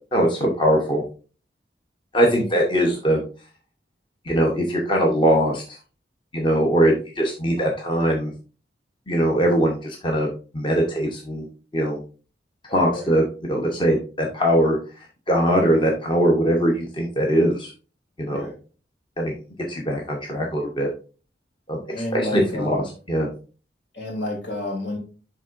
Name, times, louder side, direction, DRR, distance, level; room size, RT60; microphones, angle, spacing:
voice 1, 0.1-1.0 2.1-3.2 4.2-5.6 6.3-8.3 9.1-11.5 11.7-12.0 12.7-14.8 15.3-17.7 18.2-18.5 19.2-19.4 19.7-20.9 21.7-21.8 22.1-23.3, equal, 30° left, 0 dB, 0.9 m, -21 dB
voice 2, 21.9-22.9 23.9-25.0, left 1 dB, 75° left, 0 dB, 2.9 m, -30 dB
11.0 x 3.7 x 2.5 m, 0.36 s
head